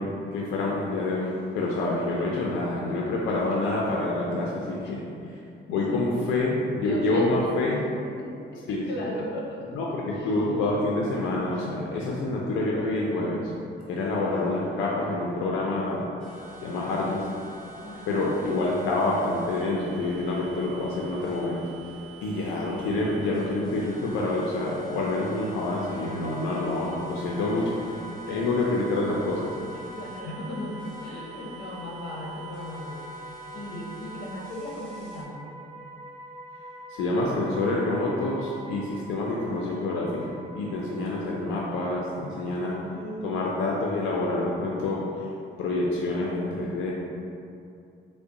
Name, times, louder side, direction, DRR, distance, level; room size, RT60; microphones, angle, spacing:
voice 1, 0.0-5.1 5.7-7.8 8.7-8.8 9.7-13.5 13.9-16.1 16.6-17.3 18.1-21.8 22.2-28.0 28.3-29.6 36.9-42.9 43.2-45.3 45.6-46.9, left 2 dB, 90° left, -3 dB, 0.4 m, -27 dB
voice 2, 5.7-6.1 6.8-7.5 8.2-9.8 10.1-10.6 11.5-11.7 14.0-14.4 17.8-18.3 22.2-22.6 25.5-26.1 27.3-27.7 28.3-28.4 29.7-33.2 33.5-35.5 42.6-43.4, left 1 dB, 60° left, -3 dB, 0.8 m, -38 dB
sound 1, 16.2-35.2, equal, 5° left, 1.2 m, -46 dB
sound 2, 25.8-43.0, right 1 dB, 35° right, 1.0 m, -45 dB
3.7 x 2.1 x 3.6 m, 2.6 s
cardioid pair, 90°, 20 cm